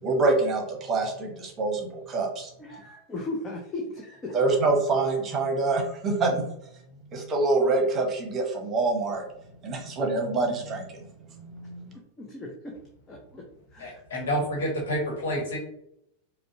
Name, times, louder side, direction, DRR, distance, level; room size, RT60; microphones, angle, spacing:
voice 1, 0.0-2.5 4.3-6.5 7.1-9.2 9.6-11.0 11.3-11.9, right 3 dB, 25° right, 2 dB, 1.0 m, -26 dB
voice 2, 2.6-4.6 12.2-12.8 13.1-14.0 14.4-14.5, left 2 dB, 20° left, 0 dB, 0.7 m, -37 dB
voice 3, 13.8-15.6, equal, 60° left, 0 dB, 1.2 m, -29 dB
5.1 x 2.2 x 2.8 m, 0.77 s
figure-of-eight pair, 90°, 0 cm